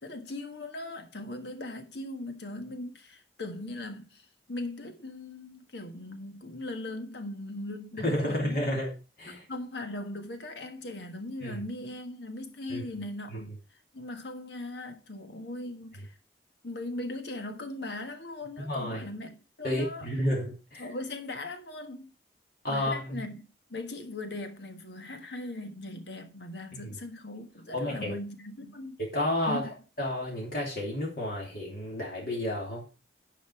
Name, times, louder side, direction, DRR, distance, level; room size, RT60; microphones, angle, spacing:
voice 1, 0.0-8.6 9.5-13.6 13.9-16.1 16.6-20.1 20.8-22.1 22.7-29.0 29.5-29.7, left 2 dB, 80° left, 1.5 m, -39 dB
voice 2, 8.0-8.9 9.2-9.4 11.4-11.6 12.7-12.8 13.3-13.4 18.6-19.0 19.6-20.9 22.6-23.2 26.7-26.9 27.7-28.1 29.0-29.7 30.0-32.8, left 1 dB, 55° left, 2.6 m, -31 dB
10.5 x 5.2 x 4.8 m
head